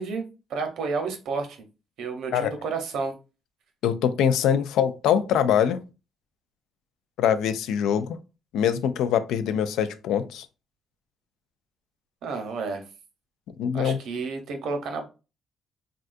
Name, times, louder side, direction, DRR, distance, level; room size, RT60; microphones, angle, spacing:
voice 1, 0.0-1.6 2.0-3.1 12.2-12.8 13.7-15.1, right 4 dB, 80° right, 0.7 m, -31 dB
voice 2, 3.8-5.8 7.2-8.2 8.5-10.5 13.6-14.0, left 9 dB, 85° left, 0.3 m, -23 dB
3.5 x 2.3 x 2.4 m
cardioid pair, 90°, 0 cm